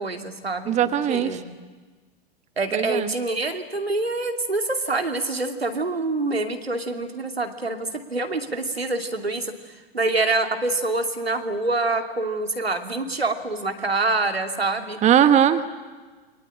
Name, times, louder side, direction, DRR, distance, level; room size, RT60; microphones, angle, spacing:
voice 1, 0.0-0.7 1.1-1.5 2.6-9.5 9.9-15.0, right 2 dB, 85° right, 5 dB, 2.8 m, -26 dB
voice 2, 0.7-1.4 2.7-3.1 15.0-15.7, right 9 dB, 25° right, 10 dB, 1.3 m, -19 dB
29.0 x 23.5 x 8.7 m, 1.3 s
figure-of-eight pair, 100°, 30 cm